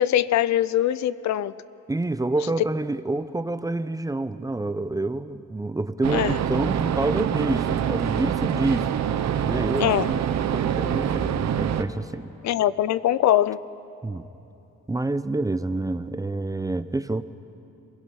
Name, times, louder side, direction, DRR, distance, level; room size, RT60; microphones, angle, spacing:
voice 1, 0.0-1.5 6.1-6.4 9.8-10.1 12.4-13.6, left 12 dB, 65° left, 18 dB, 0.5 m, -22 dB
voice 2, 1.9-8.9 9.4-10.3 10.5-12.3 14.0-14.3 14.9-17.2, right 2 dB, 10° right, 12 dB, 0.6 m, -27 dB
sound 1, 6.0-11.8, right 9 dB, 65° right, 0.9 m, -25 dB
27.5 x 17.5 x 5.6 m, 3.0 s
cardioid pair, 90°, 30 cm